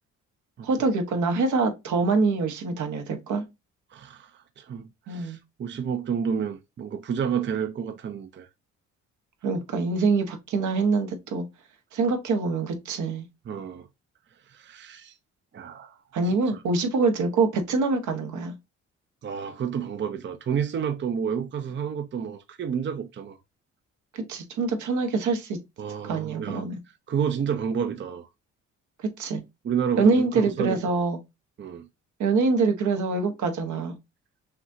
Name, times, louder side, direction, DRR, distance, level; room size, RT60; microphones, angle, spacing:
voice 1, 0.6-3.4 5.1-5.4 9.4-11.4 11.9-13.2 16.1-18.5 24.1-25.6 26.1-26.7 29.0-29.4 30.0-31.2 32.2-34.0, right 4 dB, 75° right, 1.2 m, -25 dB
voice 2, 3.9-8.5 13.5-13.9 14.5-15.2 15.5-16.0 16.2-16.3 19.2-23.4 25.8-26.7 27.1-28.3 29.6-30.8 31.6-31.9, right 7 dB, 40° right, 0.6 m, -30 dB
5.8 x 2.8 x 2.6 m
cardioid pair, 90°, 30 cm